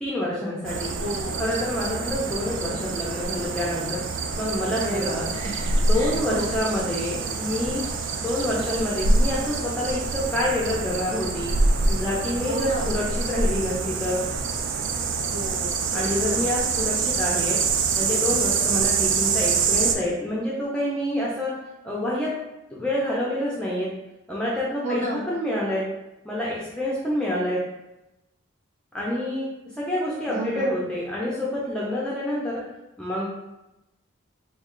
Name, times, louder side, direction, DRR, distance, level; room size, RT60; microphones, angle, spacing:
voice 1, 0.0-0.9 1.4-4.0 4.4-5.3 5.7-7.8 8.2-11.5 11.9-14.2 15.9-17.6 17.9-21.5 21.8-22.3 22.7-23.9 24.3-25.8 26.2-27.6 28.9-29.5 29.8-32.6 33.0-33.3, left 1 dB, 5° left, -6 dB, 0.4 m, -27 dB
sound 1, 0.6-19.9, right 4 dB, 65° right, 0.3 m, -26 dB
voice 2, 1.0-1.5 4.8-6.5 12.4-12.9 15.3-16.7 24.8-25.2 30.3-30.7, right 1 dB, 35° right, -5 dB, 0.7 m, -32 dB
3.1 x 2.2 x 3.7 m, 0.94 s
head